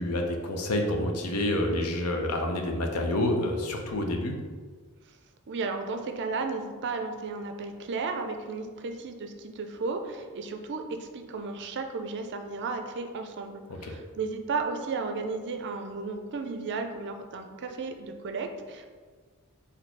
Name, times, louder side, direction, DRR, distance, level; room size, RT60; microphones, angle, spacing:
voice 1, 0.0-4.4 13.7-14.0, left 1 dB, 80° left, 3 dB, 0.7 m, -28 dB
voice 2, 5.5-18.9, right 4 dB, 50° right, 6 dB, 0.4 m, -34 dB
4.2 x 2.7 x 4.5 m, 1.5 s
head